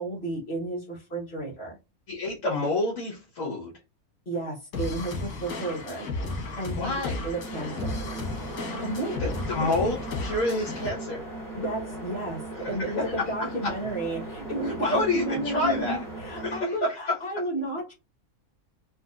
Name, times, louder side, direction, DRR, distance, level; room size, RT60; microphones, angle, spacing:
voice 1, 0.0-1.8 4.2-6.1 6.6-8.0 8.7-9.2 9.6-10.0 11.5-17.9, right 2 dB, 45° left, 1.5 m, -33 dB
voice 2, 2.1-3.7 6.8-7.2 9.2-11.2 12.6-13.7 14.6-16.0 16.4-17.4, left 2 dB, 65° left, 1.5 m, -28 dB
sound 1, 4.7-10.9, left 2 dB, 85° left, 1.6 m, -34 dB
sound 2, 7.3-16.6, right 2 dB, 15° left, 1.8 m, -38 dB
4.2 x 2.6 x 2.4 m
omnidirectional pair, 1.5 m